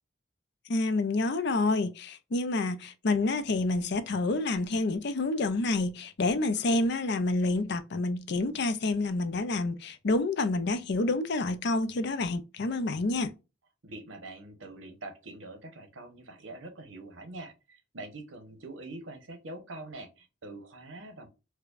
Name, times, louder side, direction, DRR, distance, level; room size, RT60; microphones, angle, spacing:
voice 1, 0.7-13.3, left 2 dB, 60° left, 0.5 m, -28 dB
voice 2, 13.8-21.3, right 2 dB, 85° right, 1.0 m, -44 dB
4.8 x 2.2 x 2.4 m
head